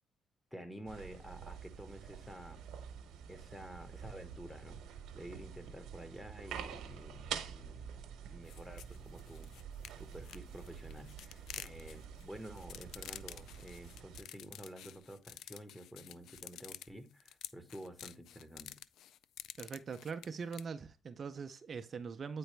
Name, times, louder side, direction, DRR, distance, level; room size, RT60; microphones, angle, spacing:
voice 1, 0.5-2.7 3.3-4.8 5.1-7.9 8.2-9.5 10.0-18.8, equal, 5° left, 1.2 m, -50 dB
sound 1, 0.9-14.2, right 8 dB, 85° right, 0.9 m, -48 dB
sound 2, 8.5-20.6, left 11 dB, 80° left, 0.3 m, -50 dB
voice 2, 19.6-22.4, right 5 dB, 45° right, 0.5 m, -42 dB
9.0 x 4.1 x 3.3 m
cardioid pair, 90°, 0 cm